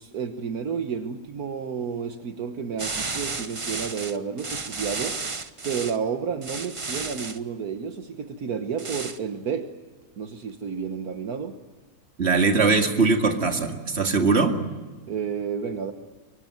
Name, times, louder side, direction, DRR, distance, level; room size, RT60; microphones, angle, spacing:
voice 1, 0.0-5.2 5.6-9.7 10.2-11.6 15.1-15.9, right 6 dB, 70° right, 7 dB, 1.7 m, -31 dB
sound 1, 2.8-6.0 6.4-7.4 8.8-9.2, right 4 dB, 25° right, 0.7 m, -32 dB
voice 2, 12.2-14.6, right 4 dB, 40° right, 4 dB, 2.4 m, -21 dB
24.5 x 23.5 x 9.4 m, 1.4 s
omnidirectional pair, 1.7 m